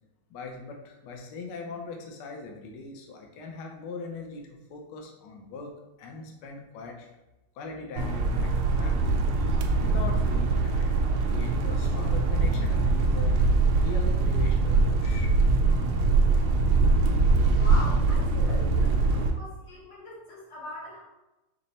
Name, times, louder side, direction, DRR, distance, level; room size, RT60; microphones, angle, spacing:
voice 1, 0.3-7.1 7.5-11.0 11.3-15.3, left 4 dB, 70° left, 1 dB, 1.1 m, -40 dB
sound 1, 8.0-19.3, right 3 dB, 90° right, 1.4 m, -23 dB
voice 2, 17.5-21.0, left 1 dB, 85° left, -7 dB, 2.4 m, -41 dB
5.3 x 2.1 x 4.0 m, 1.0 s
omnidirectional pair, 2.3 m